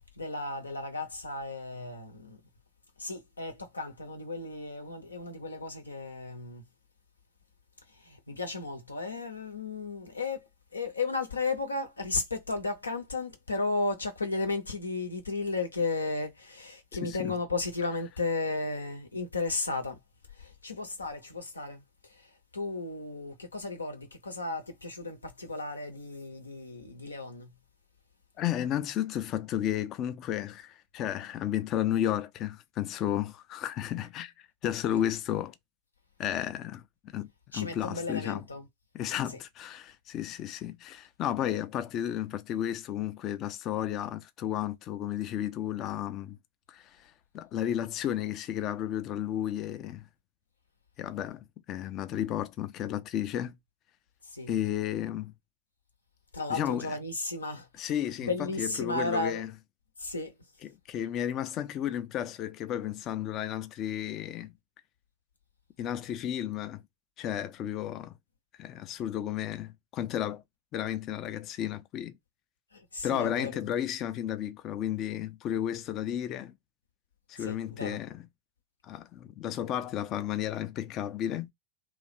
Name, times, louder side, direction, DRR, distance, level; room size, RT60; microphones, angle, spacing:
voice 1, 0.1-2.4 3.0-6.6 7.9-20.0 20.3-27.5 34.9-35.0 37.5-38.7 39.3-39.4 54.2-54.6 56.3-57.9 58.2-59.4 60.0-60.4 72.7-73.6 77.4-78.0, left 3 dB, 80° left, 0.9 m, -34 dB
voice 2, 17.0-17.3 28.4-35.5 36.2-38.4 38.9-46.4 46.7-50.1 51.0-53.6 54.5-55.3 56.5-56.9 57.8-59.5 60.6-64.5 65.8-66.8 67.2-68.1 68.6-70.4 70.7-72.2 73.0-76.5 77.3-78.2 78.8-81.5, left 11 dB, 35° left, 0.5 m, -33 dB
2.9 x 2.4 x 4.3 m
figure-of-eight pair, 90°, 0 cm